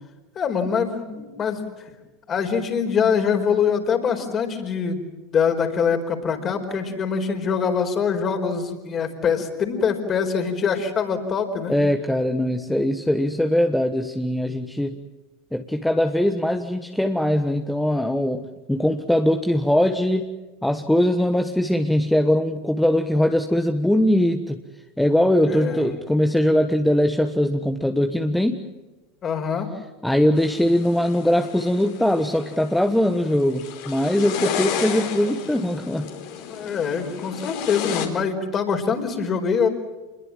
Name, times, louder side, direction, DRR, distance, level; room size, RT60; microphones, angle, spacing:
voice 1, 0.4-1.6 2.3-11.7 25.5-25.9 29.2-29.7 36.5-39.7, left 6 dB, 35° left, 5 dB, 4.7 m, -24 dB
voice 2, 11.7-15.0 15.5-20.3 20.6-24.6 25.0-28.6 30.0-36.1, left 1 dB, 5° left, 6 dB, 1.4 m, -21 dB
sound 1, 30.4-38.1, left 8 dB, 60° left, 4.3 m, -32 dB
27.0 x 22.0 x 7.5 m, 1.1 s
hypercardioid pair, 85°, 0 cm